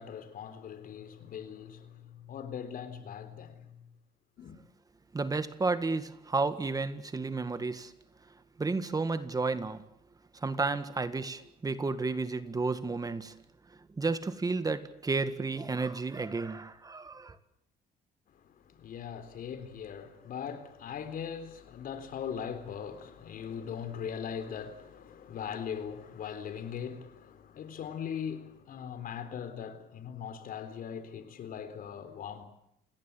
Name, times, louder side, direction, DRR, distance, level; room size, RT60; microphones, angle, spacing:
voice 1, 0.0-3.8 4.4-4.6 18.5-32.5, left 8 dB, 55° left, 3.8 m, -40 dB
voice 2, 5.1-7.9 8.6-9.8 10.4-13.3 14.0-17.4, right 3 dB, 20° right, 1.7 m, -32 dB
29.0 x 18.0 x 8.4 m
cardioid pair, 110°, 17 cm